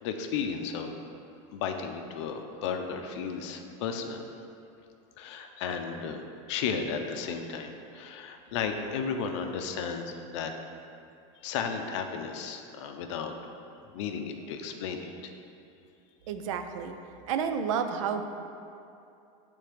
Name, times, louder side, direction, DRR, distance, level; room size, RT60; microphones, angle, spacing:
voice 1, 0.0-0.9 1.5-4.2 5.2-6.2 6.5-10.5 11.4-13.5 13.9-15.3, left 6 dB, 65° left, 5 dB, 0.5 m, -34 dB
voice 2, 16.3-17.0 17.3-18.2, right 7 dB, 80° right, 7 dB, 0.5 m, -30 dB
8.2 x 3.5 x 3.3 m, 2.6 s
supercardioid pair, 165°, 17 cm